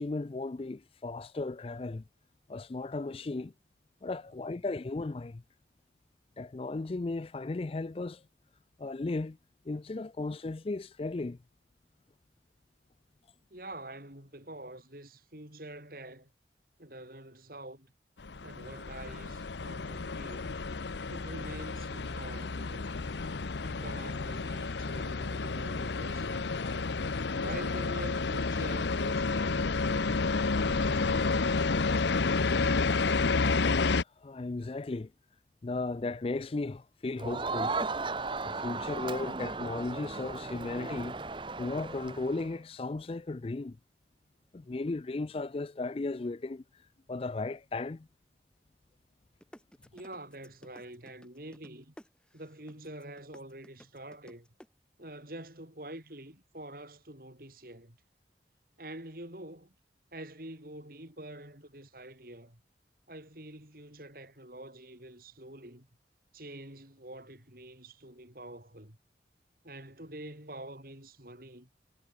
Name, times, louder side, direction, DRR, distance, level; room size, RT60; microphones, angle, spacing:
voice 1, 0.0-2.0 2.5-3.5 4.0-5.4 6.4-8.2 8.8-9.4 9.7-11.4 33.8-35.1 35.6-37.7 38.4-41.2 41.6-43.8 44.5-46.6 47.1-48.1, left 3 dB, 30° left, 0.4 m, -35 dB
voice 2, 13.5-16.3 16.8-17.9 18.4-20.5 21.1-22.9 23.6-26.6 27.3-30.2 30.6-31.4 49.9-51.9 52.3-54.5 55.0-58.0 58.8-59.7 60.1-62.6 63.1-65.9 66.3-69.0 69.6-71.7, right 1 dB, 50° right, 6.1 m, -46 dB
sound 1, 18.2-34.0, left 4 dB, 75° left, 0.8 m, -30 dB
Crowd, 37.2-42.5, right 3 dB, 25° right, 0.9 m, -36 dB
sound 2, 49.4-54.7, equal, 5° left, 7.0 m, -53 dB
head